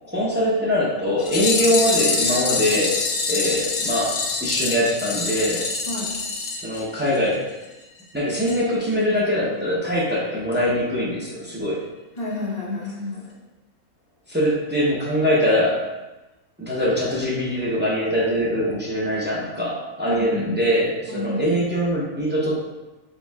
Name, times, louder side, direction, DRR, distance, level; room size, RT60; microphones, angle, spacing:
voice 1, 0.1-5.7 6.6-7.4 8.1-11.8 14.3-15.8 16.6-22.5, equal, 15° right, -6 dB, 0.4 m, -23 dB
sound 1, 1.2-7.4 7.6-7.7 8.0-8.1 8.5-8.6 8.9-9.0, left 4 dB, 60° left, 0.6 m, -25 dB
voice 2, 12.2-13.3 20.0-20.5 21.1-21.4, left 2 dB, 30° left, -6 dB, 1.0 m, -29 dB
4.5 x 3.9 x 2.3 m, 1.1 s
omnidirectional pair, 1.5 m